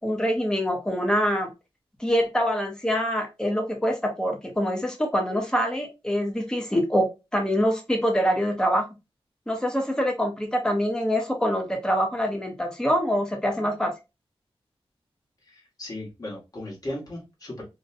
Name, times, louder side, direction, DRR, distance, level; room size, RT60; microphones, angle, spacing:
voice 1, 0.0-1.5 2.0-8.9 9.5-13.9, equal, 5° left, 3 dB, 0.7 m, -25 dB
voice 2, 15.4-17.6, left 1 dB, 40° left, -3 dB, 1.2 m, -36 dB
2.6 x 2.1 x 2.5 m, 0.26 s
wide cardioid pair, 100°, 10 cm